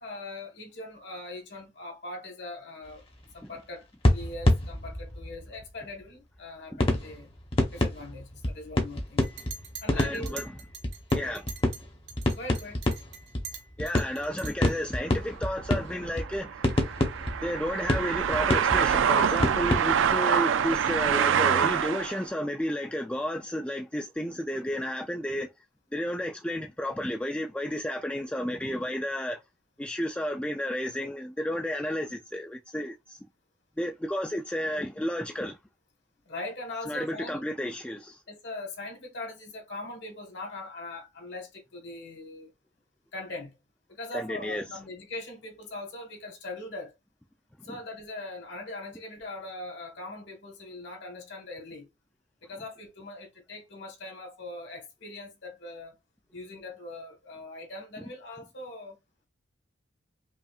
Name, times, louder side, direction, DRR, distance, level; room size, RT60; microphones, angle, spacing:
voice 1, 0.0-3.0 3.3-7.3 7.7-9.3 9.8-10.4 11.2-11.4 12.3-12.8 36.2-37.5 38.3-42.5 43.1-43.6 43.9-47.0 47.6-51.9 52.4-56.0 56.3-59.0, left 2 dB, 60° left, 1.5 m, -41 dB
sound 1, 2.8-2.9 4.0-5.7 6.8-20.2, left 1 dB, 30° left, 0.9 m, -28 dB
Chink clink, 9.2-11.8 12.1-14.8, right 6 dB, 60° right, 1.1 m, -44 dB
voice 2, 9.9-10.5 11.1-11.4 13.8-16.6 17.4-25.5 25.9-29.4 29.8-33.2 33.8-35.6 36.9-38.2 44.1-44.6 47.7-47.8, equal, 5° left, 0.3 m, -32 dB
sound 2, 15.1-22.2, right 8 dB, 80° right, 0.4 m, -26 dB
5.4 x 2.4 x 2.4 m
head